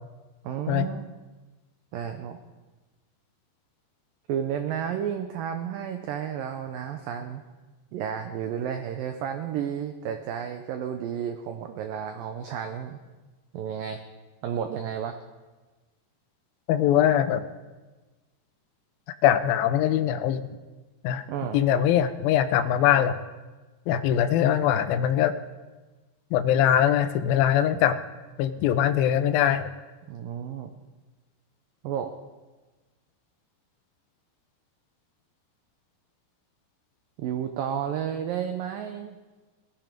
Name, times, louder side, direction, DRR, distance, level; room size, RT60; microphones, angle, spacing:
voice 1, 0.4-1.1 1.9-2.4 4.3-7.4 7.9-13.0 13.5-14.0 14.4-15.2 21.3-21.6 30.1-30.7 31.8-32.1 37.2-39.2, right 9 dB, 85° right, 7 dB, 1.9 m, -32 dB
voice 2, 16.7-17.5 19.2-20.4 21.0-21.2 21.5-23.2 23.9-25.3 26.3-28.0 28.4-29.7, left 10 dB, 80° left, 9 dB, 2.2 m, -22 dB
19.0 x 12.0 x 5.2 m, 1.2 s
omnidirectional pair, 5.0 m